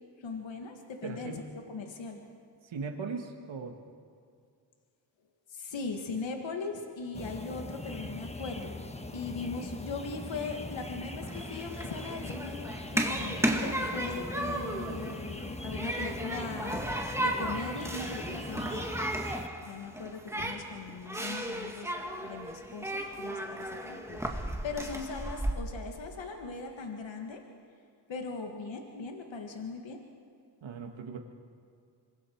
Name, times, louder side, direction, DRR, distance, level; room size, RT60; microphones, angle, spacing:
voice 1, 0.2-2.2 5.5-19.0 19.6-27.4 28.1-30.0, left 4 dB, 75° left, 3 dB, 2.0 m, -39 dB
voice 2, 1.0-1.4 2.6-3.7 30.6-31.2, right 5 dB, 75° right, 3 dB, 1.8 m, -38 dB
sound 1, 7.1-19.5, left 2 dB, 15° left, 1.2 m, -41 dB
Human group actions, 11.2-25.5, right 1 dB, 5° right, 2.2 m, -35 dB
26.0 x 21.0 x 4.7 m, 2.3 s
cardioid pair, 60°, 47 cm